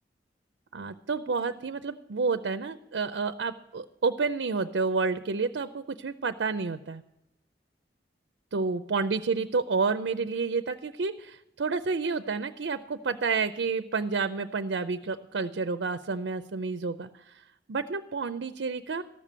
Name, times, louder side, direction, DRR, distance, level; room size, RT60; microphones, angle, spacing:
voice 1, 0.7-7.0 8.5-17.3 17.7-19.0, right 4 dB, 85° right, 10 dB, 0.5 m, -30 dB
14.0 x 6.8 x 7.4 m, 0.87 s
head